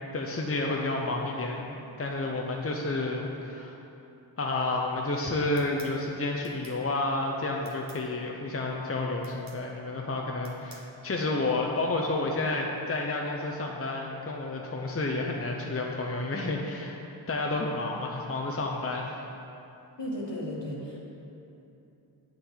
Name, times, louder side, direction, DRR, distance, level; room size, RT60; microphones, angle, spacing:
voice 1, 0.1-3.7 4.4-17.0 17.3-19.2, left 2 dB, 30° left, 0 dB, 0.8 m, -30 dB
sound 1, 5.6-6.0 6.4-6.8 7.7-8.0 9.2-9.6 10.4-10.9, right 3 dB, 35° right, 1.1 m, -52 dB
voice 2, 20.0-21.0, left 1 dB, 65° left, -4 dB, 1.8 m, -34 dB
8.2 x 7.0 x 3.9 m, 2.9 s
cardioid pair, 45°, 46 cm